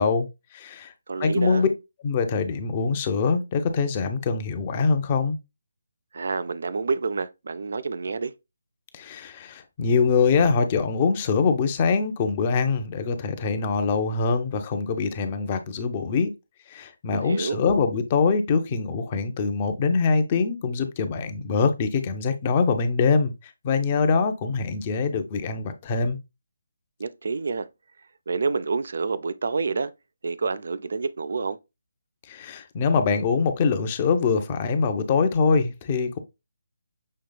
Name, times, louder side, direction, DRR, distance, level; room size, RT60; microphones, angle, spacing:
voice 1, 0.0-0.9 1.2-1.7 2.0-5.4 8.9-16.3 16.7-23.3 23.6-26.2 32.3-36.2, left 5 dB, 30° left, 0.7 m, -23 dB
voice 2, 1.1-1.6 6.1-8.3 17.1-17.6 27.0-27.7 28.3-29.9 30.2-31.6, right 4 dB, 60° right, 0.4 m, -28 dB
6.5 x 3.2 x 2.2 m
figure-of-eight pair, 150°, 0 cm